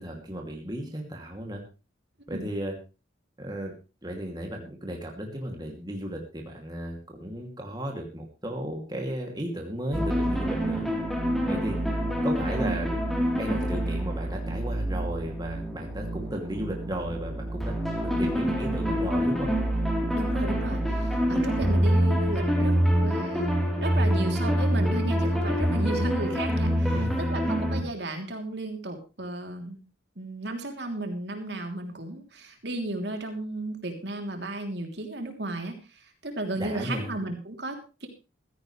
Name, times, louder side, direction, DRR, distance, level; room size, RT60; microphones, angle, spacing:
voice 1, 0.0-1.6 2.3-2.7 3.4-3.7 4.0-10.8 11.5-11.8 12.2-13.0 13.3-17.7 18.0-19.5 26.9-27.2 36.6-37.2, equal, 20° right, 1 dB, 2.6 m, -34 dB
sound 1, 9.9-27.8, equal, ahead, 3.6 m, -26 dB
voice 2, 20.1-22.7 23.0-23.5 23.8-29.8 30.2-38.1, right 2 dB, 60° right, 4 dB, 3.2 m, -34 dB
16.0 x 14.5 x 3.3 m, 0.32 s
head